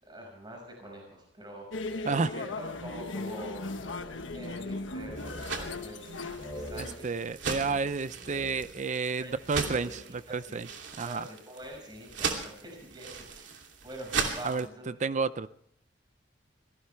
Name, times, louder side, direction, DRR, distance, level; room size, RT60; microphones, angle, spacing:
voice 1, 0.0-1.7 2.3-3.8 4.3-7.2 9.2-9.4 9.7-10.0 10.3-10.7 11.0-14.9, right 1 dB, 25° right, 1 dB, 5.6 m, -45 dB
sound 1, 1.7-7.0, left 3 dB, 90° left, 1.3 m, -38 dB
sound 2, 3.8-4.6 4.9-5.8 6.3-9.1 9.4-10.4, equal, 15° left, 7.3 m, -46 dB
sound 3, 5.2-14.7, right 5 dB, 75° right, 2.8 m, -38 dB
voice 2, 6.8-10.7 11.0-11.3 14.4-14.7 15.0-15.5, right 4 dB, 40° right, 14 dB, 0.5 m, -31 dB
24.5 x 17.5 x 3.4 m, 0.66 s
head